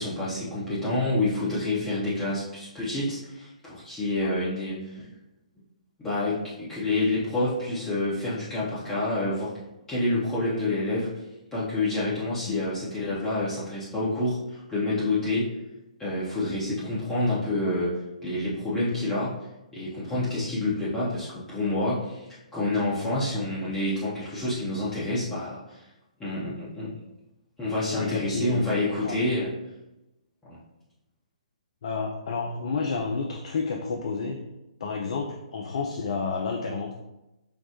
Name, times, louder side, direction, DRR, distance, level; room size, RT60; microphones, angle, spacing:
voice 1, 0.0-5.0 6.0-9.5 9.9-11.1 11.5-15.5 16.0-19.3 19.7-25.8 26.2-26.9 27.6-29.5 30.4-30.6, left 2 dB, 10° left, -10 dB, 0.7 m, -28 dB
voice 2, 27.9-28.7 29.0-29.2 31.8-34.5 34.8-36.9, left 4 dB, 50° left, 2 dB, 0.3 m, -30 dB
4.8 x 2.0 x 2.8 m, 0.97 s
figure-of-eight pair, 130°, 4 cm